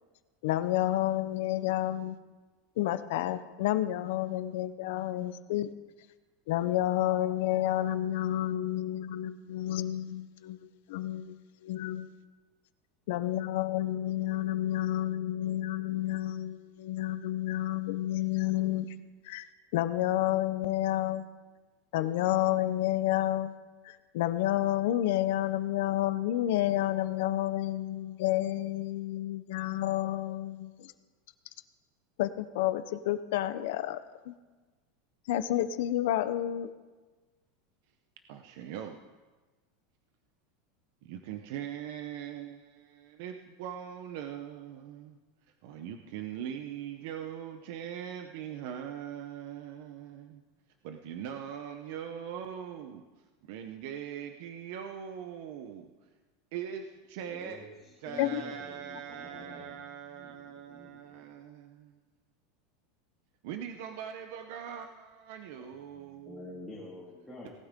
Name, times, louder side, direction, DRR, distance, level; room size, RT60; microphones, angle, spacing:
voice 1, 0.4-2.2 2.8-5.7 6.5-10.6 10.9-11.4 11.6-12.1 13.1-18.9 19.2-19.5 19.7-21.3 21.9-23.5 23.8-30.9 32.2-34.0 34.3-34.4 35.3-36.7 58.1-58.4, left 13 dB, 60° left, 12 dB, 0.8 m, -30 dB
voice 2, 38.3-39.0 41.0-45.2 45.6-50.4 50.8-53.0 53.4-55.9 56.5-57.6 58.0-62.0 63.4-66.6, right 9 dB, 50° right, 6 dB, 0.8 m, -41 dB
voice 3, 57.2-61.1 65.6-67.5, left 2 dB, 5° left, -7 dB, 2.3 m, -48 dB
18.5 x 12.5 x 3.7 m, 1.3 s
supercardioid pair, 180°, 0 cm